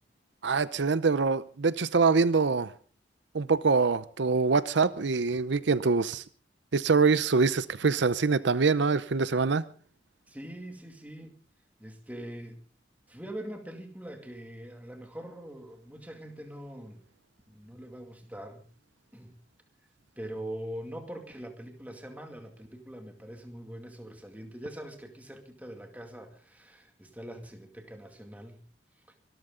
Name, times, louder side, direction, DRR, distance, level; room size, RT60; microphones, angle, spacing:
voice 1, 0.4-2.7 3.3-6.2 6.7-9.6, right 4 dB, 75° right, 0.7 m, -24 dB
voice 2, 10.3-11.3 11.8-12.6 13.1-17.0 17.5-18.7 19.1-19.3 20.2-28.6 29.1-29.2, right 1 dB, 10° right, 2.3 m, -43 dB
24.5 x 13.5 x 3.8 m
head